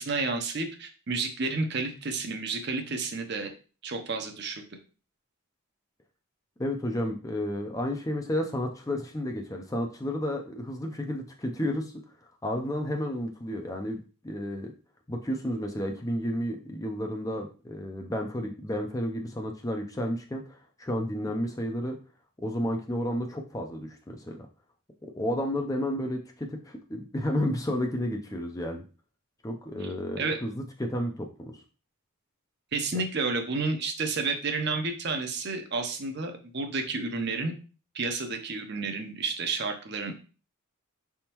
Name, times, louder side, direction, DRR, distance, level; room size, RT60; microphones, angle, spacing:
voice 1, 0.0-3.5 3.8-4.6 30.2-30.4 32.7-37.5 37.9-40.2, right 3 dB, 50° right, 5 dB, 0.7 m, -31 dB
voice 2, 6.6-11.9 12.4-14.7 15.1-22.0 22.4-24.4 25.1-28.8 29.4-31.6, left 1 dB, 15° left, 3 dB, 0.5 m, -31 dB
5.2 x 3.5 x 2.9 m, 0.36 s
head